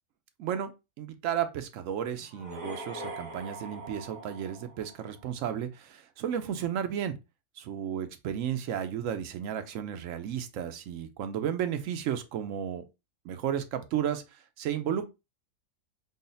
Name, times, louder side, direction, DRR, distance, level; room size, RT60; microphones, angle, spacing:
voice 1, 0.4-0.7 1.0-7.1 7.6-12.8 13.2-15.0, right 9 dB, 75° right, 1.0 m, -33 dB
sound 1, 2.3-5.3, right 1 dB, 35° right, 1.1 m, -42 dB
3.9 x 2.0 x 3.8 m
omnidirectional pair, 1.4 m